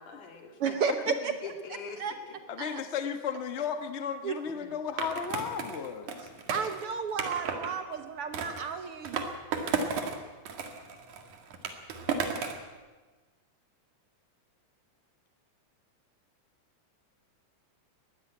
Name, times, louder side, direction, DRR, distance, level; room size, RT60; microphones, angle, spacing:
voice 1, 0.0-0.5 1.2-2.4 2.7-2.8 4.5-4.7, left 4 dB, 80° left, 4 dB, 4.0 m, -44 dB
voice 2, 0.6-1.3 2.0-2.1 2.6-2.8 4.2-4.3 6.5-9.2, right 6 dB, 60° right, 8 dB, 1.7 m, -32 dB
voice 3, 2.5-6.3, left 7 dB, 65° left, 8 dB, 0.6 m, -34 dB
Skateboard, 5.0-7.7 8.3-10.2 10.4-12.7, right 5 dB, 80° right, 3.3 m, -34 dB
20.5 x 14.5 x 9.1 m, 1.3 s
omnidirectional pair, 3.4 m